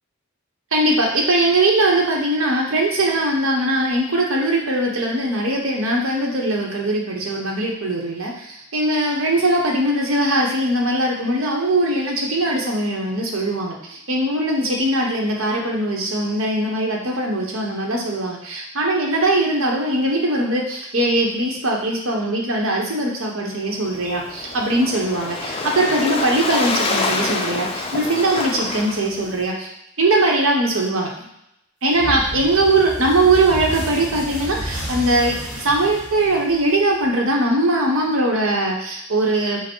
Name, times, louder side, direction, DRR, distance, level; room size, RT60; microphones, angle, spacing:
voice 1, 0.7-29.7 30.0-31.1 31.8-39.6, right 1 dB, 75° right, -1 dB, 1.0 m, -20 dB
Waves surf, 23.7-29.4, left 3 dB, 25° left, 0.4 m, -26 dB
sound 1, 31.9-37.1, equal, 5° right, 1.3 m, -31 dB
5.7 x 2.1 x 4.5 m, 0.80 s
head